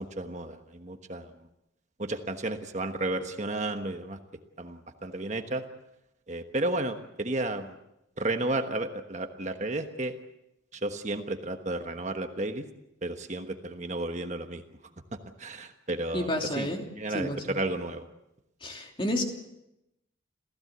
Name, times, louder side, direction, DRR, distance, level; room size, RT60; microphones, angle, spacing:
voice 1, 0.0-1.5 2.0-4.2 4.6-5.6 6.3-7.8 8.2-10.2 10.7-12.7 13.0-14.6 15.1-16.7 16.9-18.1, right 2 dB, 35° right, 6 dB, 1.3 m, -33 dB
voice 2, 16.1-16.9 17.1-17.6 18.6-19.2, left 1 dB, 25° left, 2 dB, 3.0 m, -30 dB
27.5 x 16.0 x 8.1 m, 0.90 s
head